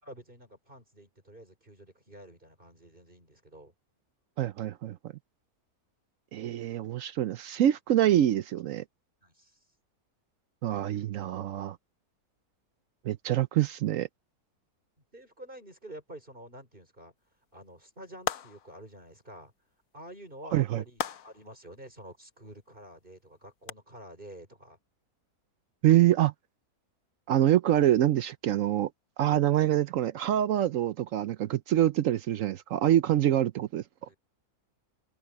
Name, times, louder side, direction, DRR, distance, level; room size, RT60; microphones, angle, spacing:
voice 1, 0.0-3.7 9.2-9.6 15.1-17.1 17.5-19.5 19.9-24.8 34.0-34.2, right 1 dB, 35° right, 5.2 m, -49 dB
voice 2, 4.4-5.0 6.3-8.8 10.6-11.8 13.0-14.1 20.5-20.8 25.8-26.3 27.3-28.9 29.2-33.8, right 12 dB, 70° right, 0.9 m, -25 dB
sound 1, 18.3-18.9 21.0-21.5 23.7-23.8, left 9 dB, 65° left, 1.2 m, -35 dB
open air
omnidirectional pair, 1.6 m